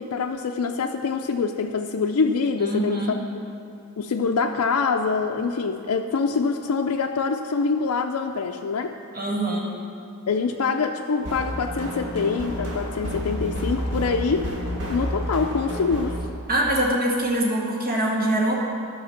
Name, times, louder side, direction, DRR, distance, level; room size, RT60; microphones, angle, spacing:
voice 1, 0.0-3.2 4.0-9.0 10.3-14.5 14.9-16.2, left 5 dB, 80° left, 3 dB, 0.4 m, -25 dB
voice 2, 2.6-3.1 9.1-9.7 16.5-18.5, right 1 dB, 40° right, -3 dB, 1.7 m, -23 dB
sound 1, 11.2-16.2, equal, 60° right, 2.1 m, -30 dB
11.5 x 6.2 x 5.8 m, 2.5 s
head